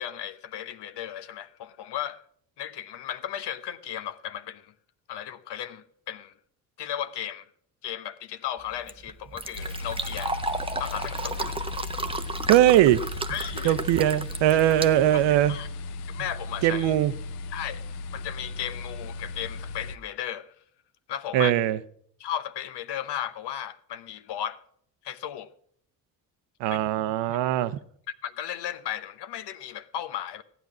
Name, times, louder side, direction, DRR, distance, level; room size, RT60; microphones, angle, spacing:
voice 1, 0.0-2.2 2.6-4.7 5.1-6.3 6.8-7.4 7.8-10.4 10.8-11.6 13.3-13.8 15.1-15.2 15.5-15.7 16.1-16.9 17.5-17.8 18.1-20.5 21.1-21.5 22.2-24.6 25.0-25.5 26.7-26.8 27.3-27.4 28.2-30.4, left 10 dB, 55° left, 1.0 m, -35 dB
Fill (with liquid), 8.6-15.7, right 3 dB, 10° right, 0.8 m, -34 dB
sound 1, 9.6-20.0, left 3 dB, 75° left, 0.7 m, -36 dB
voice 2, 12.5-13.0 13.6-15.6 16.6-17.1 21.3-21.8 26.6-27.8, right 13 dB, 60° right, 0.9 m, -21 dB
15.0 x 9.0 x 6.0 m
hypercardioid pair, 50°, 48 cm